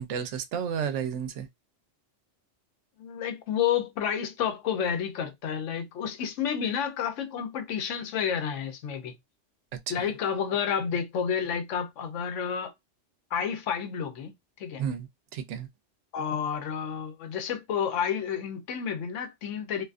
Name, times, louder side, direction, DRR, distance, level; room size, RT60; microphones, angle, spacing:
voice 1, 0.0-1.5 9.9-10.1 14.8-15.7, right 7 dB, 80° right, 0.9 m, -32 dB
voice 2, 3.0-9.1 9.9-12.7 13.3-14.3 14.6-14.8 16.1-19.8, left 8 dB, 90° left, 1.0 m, -30 dB
2.6 x 2.3 x 2.4 m
omnidirectional pair, 1.2 m